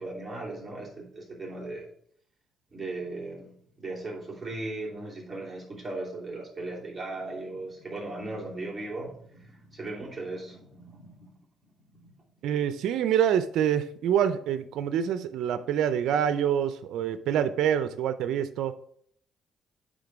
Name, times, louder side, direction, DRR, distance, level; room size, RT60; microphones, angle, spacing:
voice 1, 0.0-1.9 2.7-11.3 11.9-12.1, right 2 dB, 25° right, -3 dB, 2.8 m, -37 dB
voice 2, 12.4-18.7, right 9 dB, 80° right, 11 dB, 0.5 m, -26 dB
9.0 x 3.7 x 4.6 m, 0.63 s
cardioid pair, 90°, 0 cm